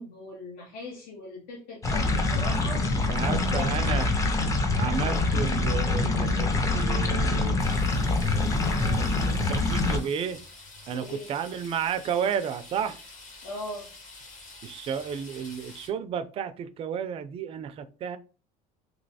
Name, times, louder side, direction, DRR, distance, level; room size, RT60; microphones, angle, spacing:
voice 1, 0.0-2.9 3.2-4.1 8.7-9.1 10.9-11.3 13.4-13.9, left 2 dB, 75° left, 0.9 m, -40 dB
sound 1, 1.8-10.0, left 2 dB, 20° left, 0.5 m, -25 dB
voice 2, 3.1-4.1 4.7-7.6 8.3-10.4 10.9-13.0 14.6-18.2, right 8 dB, 35° right, 0.3 m, -32 dB
sound 2, 7.6-15.9, left 3 dB, 50° left, 1.3 m, -47 dB
3.0 x 2.9 x 2.7 m
cardioid pair, 130°, 17 cm